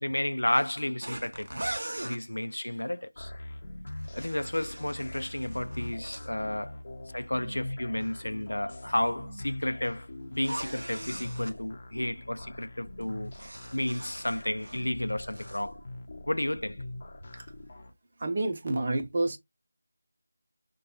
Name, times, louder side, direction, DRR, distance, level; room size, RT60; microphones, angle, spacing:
voice 1, 0.0-1.5 2.0-3.3 4.1-6.8 7.1-13.3 13.7-15.8 16.3-16.8, left 1 dB, 80° left, 0.4 m, -32 dB
sound 1, 1.0-2.2 3.9-6.3 10.3-11.6 13.0-14.9 15.2-15.6, right 1 dB, 75° right, 0.6 m, -40 dB
sound 2, 3.2-17.9, left 1 dB, 40° left, 0.6 m, -42 dB
voice 2, 18.2-19.4, right 2 dB, 35° right, 0.7 m, -28 dB
5.0 x 2.2 x 2.9 m
figure-of-eight pair, 165°, 0 cm